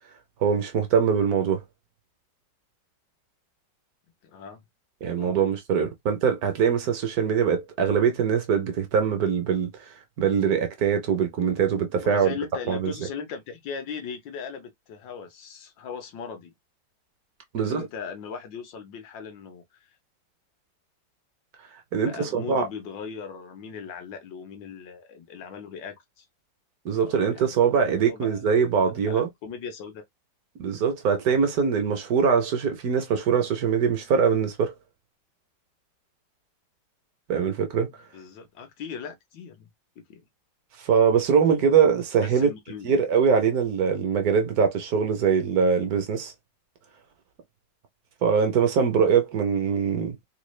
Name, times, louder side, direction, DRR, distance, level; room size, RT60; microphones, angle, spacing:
voice 1, 0.4-1.6 5.0-9.8 10.2-12.4 12.7-12.9 17.5-17.9 21.9-22.7 26.8-29.3 30.6-34.7 37.3-37.9 40.8-42.5 42.8-46.3 48.2-50.2, right 6 dB, 65° right, 1.1 m, -22 dB
voice 2, 4.2-4.6 5.1-5.4 12.0-16.5 17.6-19.9 22.0-26.3 27.1-28.5 29.1-30.0 38.1-39.7 40.0-40.2 41.5-41.6 42.2-42.9, left 6 dB, 80° left, 1.7 m, -38 dB
3.8 x 2.3 x 3.1 m
omnidirectional pair, 2.0 m